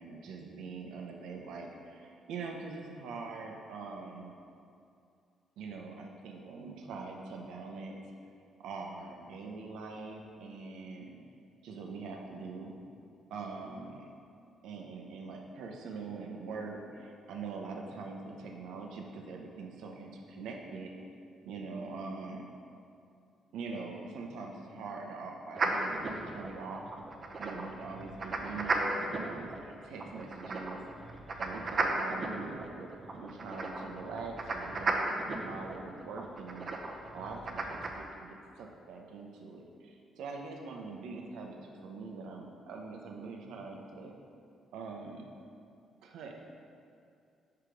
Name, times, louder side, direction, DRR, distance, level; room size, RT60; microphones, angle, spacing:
voice 1, 0.0-4.3 5.6-8.1 8.6-11.2 11.6-12.8 13.3-14.0 14.6-20.9 21.4-22.5 23.5-26.9 27.4-30.8 31.4-32.9 33.1-36.7 37.1-44.1 44.7-45.3 46.0-46.3, right 4 dB, 85° right, 1 dB, 0.7 m, -43 dB
sound 1, 25.6-37.9, right 3 dB, 45° right, 0.6 m, -36 dB
4.8 x 4.8 x 5.1 m, 2.4 s
cardioid pair, 90°, 0 cm